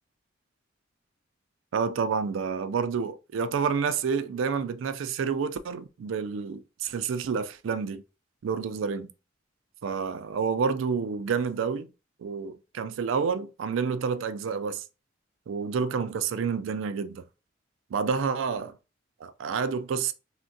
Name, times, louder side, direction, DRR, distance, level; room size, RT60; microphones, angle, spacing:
voice 1, 1.7-8.0 8.4-9.1 9.8-11.9 12.2-14.8 15.5-17.2 17.9-18.7 19.2-20.1, right 6 dB, 70° right, 0.3 m, -29 dB
3.5 x 2.1 x 2.6 m
head